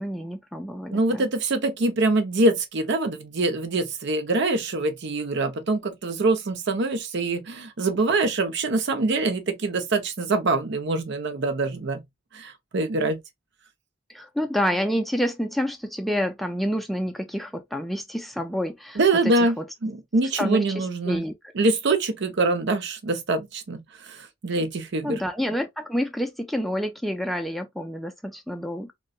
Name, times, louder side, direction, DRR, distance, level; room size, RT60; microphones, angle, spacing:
voice 1, 0.0-1.3 14.1-19.7 20.4-21.3 25.0-28.9, equal, ahead, 0.3 m, -28 dB
voice 2, 0.9-12.0 12.3-13.2 19.0-19.6 19.8-21.2 21.6-23.8 24.1-25.2, right 2 dB, 65° right, 0.7 m, -24 dB
3.8 x 2.2 x 2.3 m
head